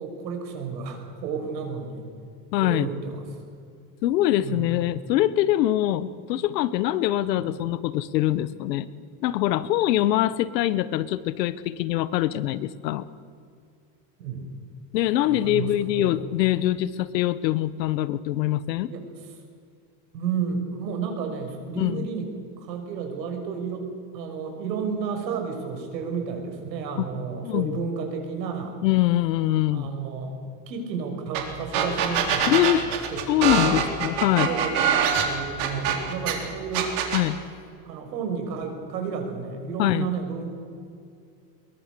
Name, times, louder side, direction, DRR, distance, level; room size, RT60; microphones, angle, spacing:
voice 1, 0.0-2.1 2.6-3.3 4.4-5.0 6.3-6.4 7.3-7.5 14.2-14.5 15.3-16.1 18.9-19.0 20.1-22.3 22.6-23.9 24.1-28.8 29.7-30.3 30.7-32.7 33.1-33.9 34.4-36.9 37.8-40.6, right 5 dB, 85° right, 4 dB, 6.0 m, -32 dB
voice 2, 2.5-2.9 4.0-8.9 9.2-13.1 14.9-18.9 21.8-22.1 27.4-27.8 28.8-29.9 32.5-32.9 33.3-34.5 37.1-37.4 39.8-40.1, left 14 dB, 80° left, 16 dB, 1.2 m, -23 dB
sound 1, 31.3-31.4 31.7-36.3 36.7-37.2, right 8 dB, 60° right, 3.9 m, -23 dB
22.5 x 22.0 x 6.9 m, 2.4 s
supercardioid pair, 170°, 49 cm